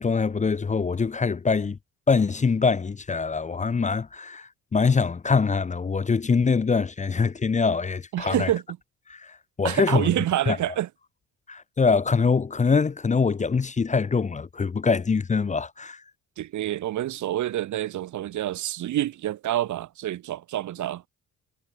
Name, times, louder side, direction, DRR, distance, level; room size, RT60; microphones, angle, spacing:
voice 1, 0.0-1.8 2.1-8.5 9.1-10.1 10.5-10.6 11.5-16.0, left 5 dB, 25° left, 0.7 m, -24 dB
voice 2, 8.1-8.6 9.6-10.9 16.4-21.0, right 13 dB, 75° right, 1.8 m, -27 dB
cardioid pair, 90°, 30 cm